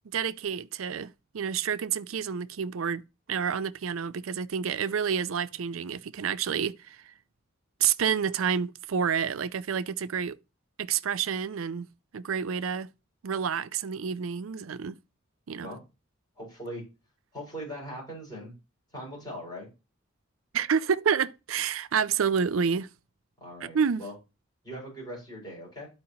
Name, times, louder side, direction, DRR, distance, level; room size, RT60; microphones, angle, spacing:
voice 1, 0.1-7.1 7.8-10.4 10.8-12.9 13.2-15.0 15.5-15.7 20.5-22.9 23.6-24.0, right 7 dB, 85° right, 0.5 m, -29 dB
voice 2, 16.4-16.8 17.3-18.5 18.9-19.7 23.4-24.1 24.6-25.9, equal, 20° left, 5.4 m, -40 dB
12.5 x 4.7 x 2.8 m
head